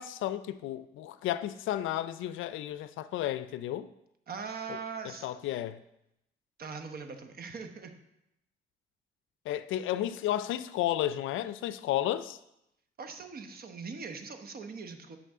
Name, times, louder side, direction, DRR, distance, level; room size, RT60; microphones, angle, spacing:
voice 1, 0.0-3.9 4.7-4.8 5.0-5.8 9.5-12.4, left 12 dB, 80° left, 0.4 m, -32 dB
voice 2, 4.3-5.3 6.6-7.9 13.0-15.2, right 5 dB, 50° right, 1.0 m, -41 dB
9.2 x 5.5 x 3.6 m
cardioid pair, 90°, 20 cm